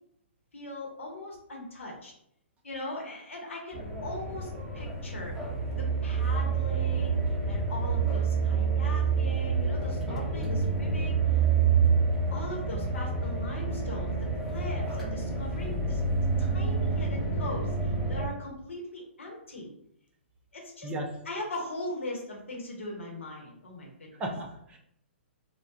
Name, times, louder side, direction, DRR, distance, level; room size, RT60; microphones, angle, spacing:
voice 1, 0.5-2.1 2.6-5.3 5.7-11.4 12.3-16.0 16.4-19.7 20.5-20.9 21.2-24.2, left 1 dB, 85° left, -1 dB, 0.9 m, -40 dB
sound 1, 3.7-18.3, right 5 dB, ahead, 0.8 m, -28 dB
voice 2, 10.1-10.6 20.8-21.1 24.2-24.8, right 1 dB, 15° right, 1 dB, 0.4 m, -36 dB
2.3 x 2.2 x 2.7 m, 0.71 s
hypercardioid pair, 135°, 7 cm